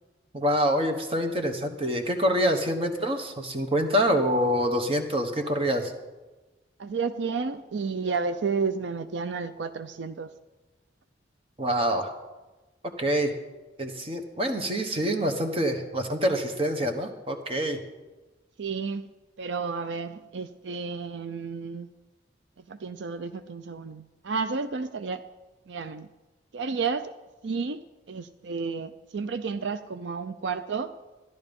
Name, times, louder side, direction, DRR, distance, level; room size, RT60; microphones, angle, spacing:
voice 1, 0.3-5.9 11.6-12.1 13.0-13.3 13.8-17.8, equal, 30° right, 6 dB, 1.2 m, -26 dB
voice 2, 6.8-10.3 18.6-19.1 19.4-21.9 22.7-25.2 25.7-26.1 26.5-27.1 27.4-27.8 28.1-30.9, right 5 dB, 80° right, 12 dB, 0.5 m, -31 dB
14.0 x 11.0 x 5.3 m, 1.2 s
head